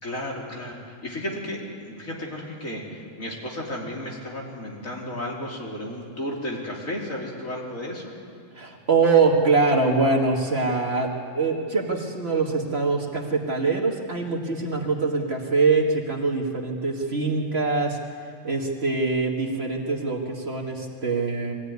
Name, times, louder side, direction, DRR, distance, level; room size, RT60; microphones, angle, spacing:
voice 1, 0.0-8.1, left 1 dB, 65° left, -2 dB, 3.8 m, -33 dB
voice 2, 8.5-18.0 18.4-21.5, right 4 dB, 45° right, 1 dB, 2.2 m, -23 dB
21.5 x 16.0 x 9.5 m, 2.3 s
omnidirectional pair, 1.5 m